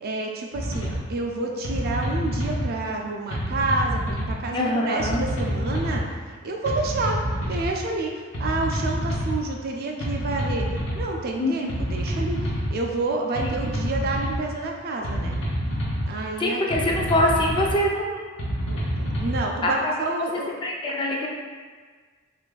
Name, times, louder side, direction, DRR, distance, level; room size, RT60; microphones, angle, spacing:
voice 1, 0.0-6.0 6.4-7.2 7.4-10.6 10.9-15.4 16.0-16.6 18.7-20.5, right 2 dB, 50° right, 1 dB, 0.4 m, -29 dB
sound 1, 0.5-1.0 1.6-2.7 3.3-4.3 5.0-6.0 6.7-7.7 8.3-9.4 10.0-11.0 11.7-12.7 13.4-14.4 15.0-16.1 16.7-17.7 18.4-19.4, equal, 65° left, 1.0 m, -27 dB
voice 2, 4.5-5.2 11.4-11.7 16.4-18.2 19.6-19.9 20.3-21.3, left 1 dB, 25° left, -1 dB, 0.4 m, -24 dB
3.0 x 2.5 x 3.8 m, 1.5 s
head